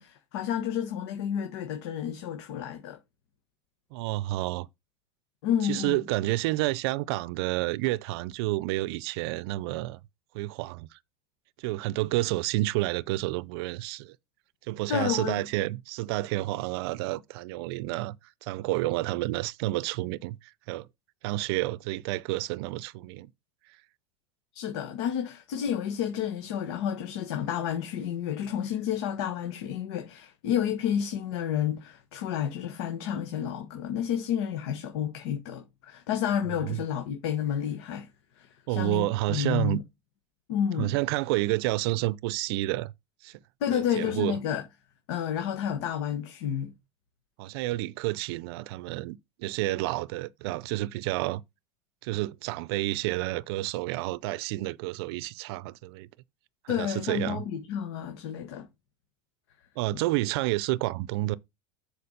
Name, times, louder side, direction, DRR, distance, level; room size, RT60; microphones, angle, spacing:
voice 1, 0.0-3.0 5.4-6.0 14.9-15.4 24.5-38.1 38.4-39.8 40.5-41.0 43.6-44.6 45.1-46.7 56.7-58.7, left 9 dB, 70° left, 1.5 m, -30 dB
voice 2, 3.9-4.7 5.6-10.0 10.3-11.0 11.6-14.2 14.7-18.2 18.4-20.9 21.2-23.3 36.5-36.8 38.7-39.8 40.8-42.9 43.2-43.4 43.7-44.4 47.4-51.4 52.0-56.1 56.6-57.4 59.8-61.4, right 18 dB, 65° right, 0.5 m, -30 dB
6.9 x 4.7 x 5.0 m
supercardioid pair, 145°, 14 cm